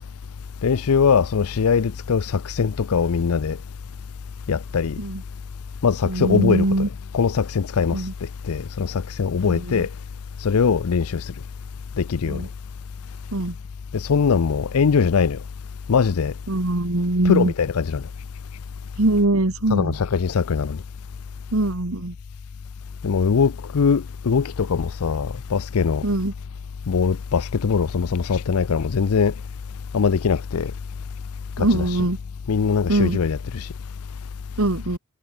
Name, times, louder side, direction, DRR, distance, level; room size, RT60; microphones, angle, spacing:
voice 1, 0.6-3.6 4.5-5.0 5.8-6.9 7.1-9.9 10.4-11.3 12.0-12.5 13.9-15.4 15.9-16.3 17.2-18.0 19.7-20.8 23.0-26.1 26.9-29.3 29.9-30.7 31.6-31.8 32.5-33.7, left 6 dB, 75° left, 0.5 m, -21 dB
voice 2, 6.0-6.9 7.9-8.1 9.4-9.9 12.3-12.5 13.3-13.5 16.5-17.5 19.0-20.0 21.5-22.1 26.0-26.3 31.6-32.2 32.9-33.2 34.6-35.0, right 2 dB, 65° right, 1.7 m, -22 dB
head